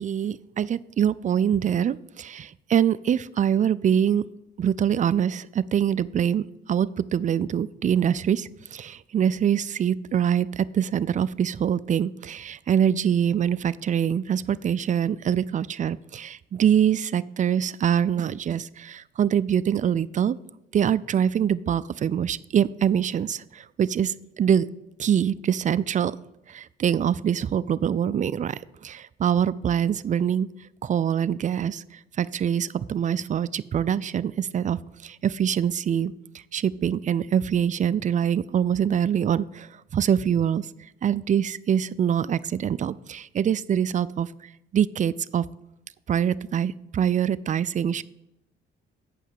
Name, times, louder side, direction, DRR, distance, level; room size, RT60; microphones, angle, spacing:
voice 1, 0.0-4.3 4.6-20.4 20.7-24.7 25.0-26.1 26.5-30.5 30.8-36.1 36.5-40.7 41.0-44.3 44.7-45.5 46.1-48.0, right 9 dB, 40° right, 16 dB, 0.4 m, -24 dB
8.4 x 5.6 x 6.4 m, 0.93 s
cardioid pair, 90°, 20 cm